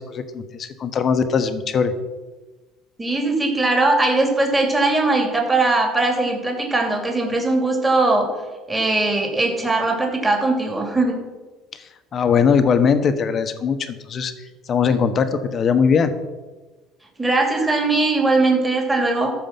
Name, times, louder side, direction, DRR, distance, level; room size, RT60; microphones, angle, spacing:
voice 1, 0.0-1.9 12.1-14.3 14.7-16.1, left 6 dB, 40° left, 9 dB, 1.1 m, -20 dB
voice 2, 3.0-8.3 8.7-11.2 17.2-19.3, right 2 dB, 15° right, 1 dB, 2.6 m, -20 dB
13.5 x 4.9 x 7.3 m, 1.3 s
supercardioid pair, 110°, 0 cm